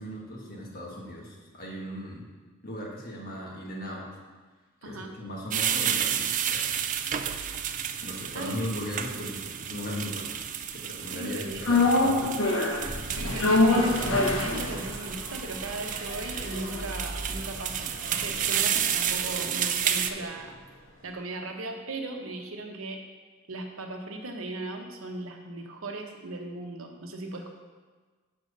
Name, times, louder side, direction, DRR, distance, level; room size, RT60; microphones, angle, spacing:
voice 1, 0.0-2.3 2.6-4.0 4.8-6.7 8.0-10.4 10.7-12.5, equal, 45° left, -3 dB, 1.5 m, -37 dB
voice 2, 4.8-5.1 8.3-8.7 11.1-11.7 13.2-20.6 21.0-23.0 23.5-27.5, right 2 dB, 85° right, 3 dB, 0.9 m, -37 dB
sound 1, 5.5-20.1, right 9 dB, 40° right, 0.3 m, -31 dB
sound 2, 11.6-19.9 20.2-20.3, left 2 dB, 80° left, 1.2 m, -27 dB
6.6 x 4.4 x 6.4 m, 1.4 s
head